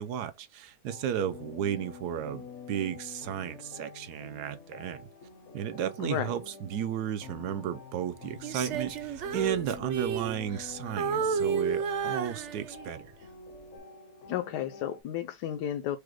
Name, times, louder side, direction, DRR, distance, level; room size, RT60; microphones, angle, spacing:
voice 1, 0.0-5.1 5.5-13.1, right 10 dB, 75° right, 1.1 m, -34 dB
sound 1, 0.9-15.0, left 6 dB, 55° left, 0.9 m, -47 dB
Female singing, 8.4-10.7 11.0-13.0 13.5-13.8, right 6 dB, 60° right, 0.8 m, -32 dB
voice 2, 14.3-16.0, left 10 dB, 80° left, 1.2 m, -32 dB
5.0 x 2.2 x 4.6 m
omnidirectional pair, 1.8 m